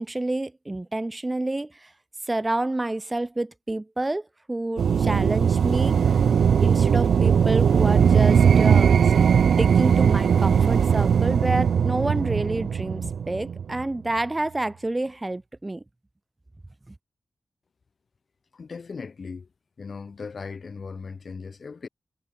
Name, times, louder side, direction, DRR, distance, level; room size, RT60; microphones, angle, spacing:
voice 1, 0.0-1.9 2.3-6.0 6.6-8.9 9.6-15.8 16.9-17.0, right 2 dB, 20° right, 2.0 m, -28 dB
sound 1, 4.8-13.8, right 7 dB, 85° right, 1.0 m, -19 dB
voice 2, 18.5-19.5 19.8-21.9, left 5 dB, 55° left, 3.3 m, -38 dB
wide cardioid pair, 100°, 0 cm